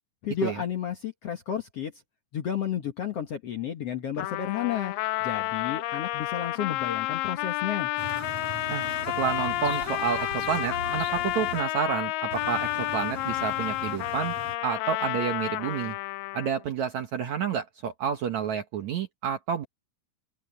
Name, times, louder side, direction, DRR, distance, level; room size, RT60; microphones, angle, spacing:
voice 1, 0.2-1.9 2.3-4.9 5.2-7.9, left 9 dB, 60° left, 1.8 m, -32 dB
Trumpet, 4.2-16.6, left 17 dB, 80° left, 2.1 m, -30 dB
sound 1, 8.0-11.6 12.3-14.5, right 4 dB, 40° right, 6.8 m, -40 dB
voice 2, 9.2-14.3 14.6-16.0 16.3-19.7, right 8 dB, 65° right, 1.9 m, -30 dB
open air
omnidirectional pair, 4.5 m